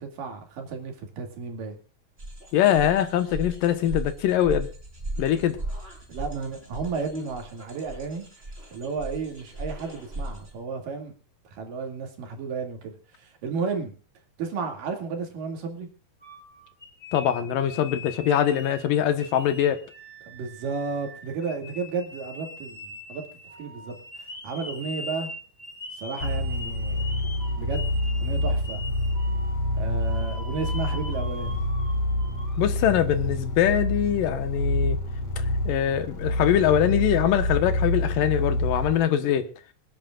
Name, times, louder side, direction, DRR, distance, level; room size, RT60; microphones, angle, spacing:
voice 1, 0.0-1.8 6.1-8.2 8.7-11.1 11.5-13.9 14.4-15.9 20.3-23.2 23.6-24.0 24.4-25.3 25.9-27.1 27.6-27.9 28.2-28.8 29.8-31.6, right 5 dB, 80° right, 3 dB, 4.2 m, -33 dB
sound 1, 2.2-10.5, right 1 dB, 15° right, 4.0 m, -37 dB
voice 2, 2.5-4.7 5.2-5.6 17.1-19.8 32.6-35.0 35.4-39.5, left 10 dB, 85° left, 9 dB, 3.0 m, -23 dB
sound 2, 16.2-18.9 19.2-32.6, left 2 dB, 25° left, 4.3 m, -42 dB
sound 3, 26.2-39.0, left 1 dB, 50° left, 2.8 m, -27 dB
26.0 x 10.5 x 2.5 m, 0.35 s
omnidirectional pair, 3.8 m